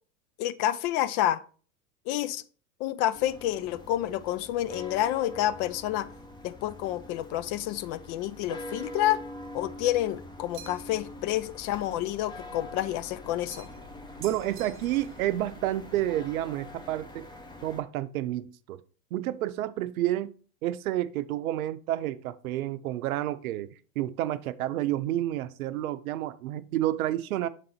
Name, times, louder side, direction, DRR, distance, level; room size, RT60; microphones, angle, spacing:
voice 1, 0.4-1.4 2.1-2.4 2.8-6.1 6.4-9.2 9.5-13.7, left 13 dB, 45° left, 0.5 m, -29 dB
sound 1, 3.1-17.8, left 1 dB, 10° left, 0.8 m, -44 dB
sound 2, 10.5-11.0 13.5-13.9 14.2-15.2, right 9 dB, 30° right, 0.8 m, -47 dB
voice 2, 14.2-17.3 17.6-18.8 19.1-20.3 20.6-27.5, right 14 dB, 75° right, 0.6 m, -30 dB
6.5 x 3.8 x 4.3 m
hypercardioid pair, 100°, 43 cm